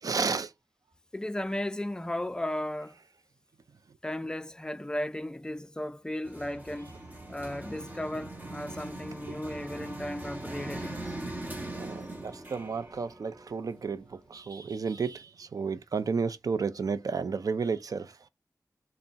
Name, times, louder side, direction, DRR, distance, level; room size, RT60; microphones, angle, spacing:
voice 1, 0.0-0.5 11.7-18.2, right 5 dB, 65° right, 0.4 m, -32 dB
voice 2, 1.1-3.0 4.0-6.9 7.3-11.0, left 1 dB, 10° left, 0.3 m, -35 dB
sound 1, 6.2-14.2, right 1 dB, 30° right, 0.6 m, -41 dB
3.4 x 2.0 x 4.0 m
wide cardioid pair, 70°, 6 cm